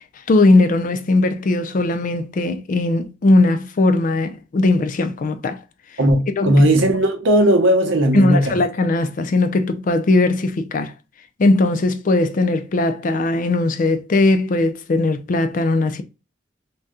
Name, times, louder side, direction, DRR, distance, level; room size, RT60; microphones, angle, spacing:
voice 1, 0.3-5.6 6.4-6.5 8.1-10.9 11.4-16.0, left 2 dB, 45° left, 0.4 m, -18 dB
voice 2, 6.0-8.6, right 1 dB, 90° right, 0.7 m, -16 dB
2.7 x 2.2 x 3.5 m
head